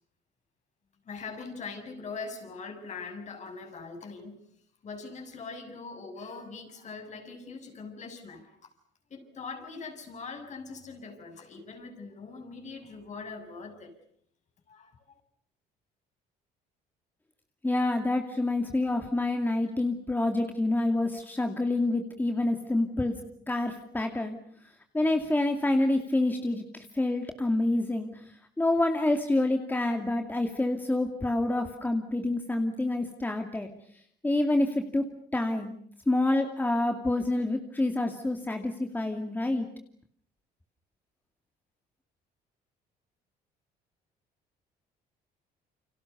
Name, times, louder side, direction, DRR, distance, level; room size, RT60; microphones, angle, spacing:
voice 1, 1.0-4.4 4.8-8.7 9.1-14.0 14.7-14.9, left 4 dB, 45° left, 6 dB, 6.9 m, -42 dB
voice 2, 17.6-23.2 23.5-24.4 24.9-28.2 28.6-33.7 34.2-35.0 35.3-35.7 36.1-39.7, left 2 dB, 10° left, 4 dB, 2.5 m, -27 dB
29.5 x 26.0 x 6.9 m, 0.65 s
cardioid pair, 110°, 17 cm